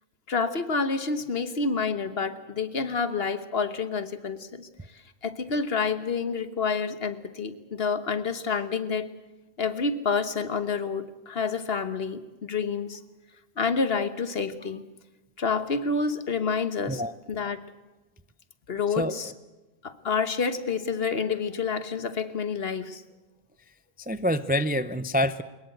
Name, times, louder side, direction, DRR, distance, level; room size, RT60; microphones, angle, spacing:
voice 1, 0.3-4.7 5.2-9.1 9.6-13.0 13.6-14.8 15.4-17.0 17.3-17.6 18.7-19.3 19.8-23.0, left 5 dB, 50° left, 11 dB, 1.4 m, -28 dB
voice 2, 19.0-19.3 24.0-25.4, equal, 15° right, 13 dB, 0.4 m, -26 dB
22.5 x 21.0 x 8.0 m, 1.1 s
omnidirectional pair, 1.3 m